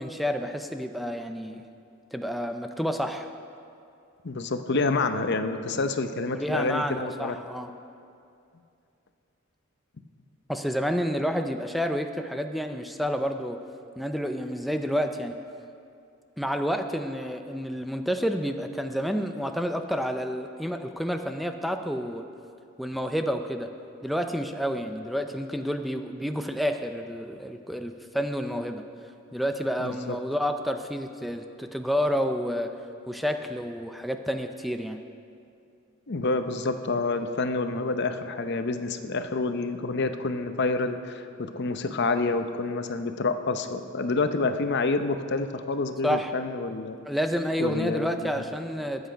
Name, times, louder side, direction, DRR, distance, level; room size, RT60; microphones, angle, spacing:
voice 1, 0.0-1.6 2.1-3.3 6.3-7.7 10.5-13.6 14.0-15.3 16.4-22.2 22.8-23.7 24.0-28.8 29.3-32.7 33.1-35.0 46.0-46.3 47.0-49.1, equal, ahead, 6 dB, 0.4 m, -29 dB
voice 2, 4.2-7.4 29.8-30.2 36.1-47.0 47.6-48.4, left 3 dB, 55° left, 8 dB, 0.7 m, -28 dB
21.0 x 8.1 x 5.1 m, 2.5 s
head